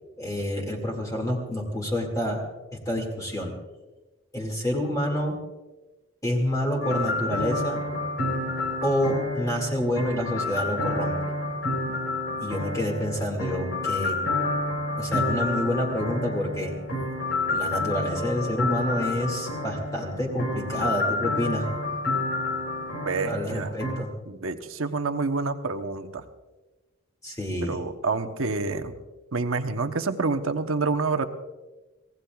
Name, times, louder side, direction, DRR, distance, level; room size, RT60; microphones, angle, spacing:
voice 1, 0.2-2.4 2.7-3.5 4.3-5.4 6.2-7.8 8.8-11.2 12.4-14.2 15.0-16.7 17.5-21.7 23.2-24.1 27.2-27.8, left 1 dB, 15° left, 0 dB, 2.1 m, -28 dB
sound 1, 6.8-23.9, left 2 dB, 65° left, 3.8 m, -29 dB
voice 2, 23.0-23.7 24.3-26.2 27.6-28.9 29.3-31.3, right 3 dB, 75° right, 7 dB, 0.9 m, -28 dB
25.5 x 18.0 x 2.4 m, 1.2 s
head